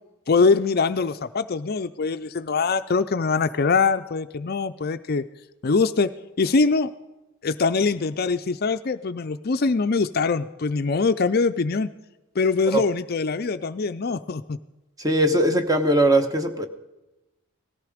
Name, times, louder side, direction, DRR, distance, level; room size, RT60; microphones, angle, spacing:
voice 1, 0.3-5.2 5.6-6.1 6.4-6.9 7.4-11.9 12.4-14.6, left 4 dB, 45° left, 11 dB, 0.5 m, -23 dB
voice 2, 15.0-16.7, right 1 dB, 15° right, 7 dB, 1.1 m, -20 dB
18.0 x 14.0 x 5.0 m, 1.0 s
head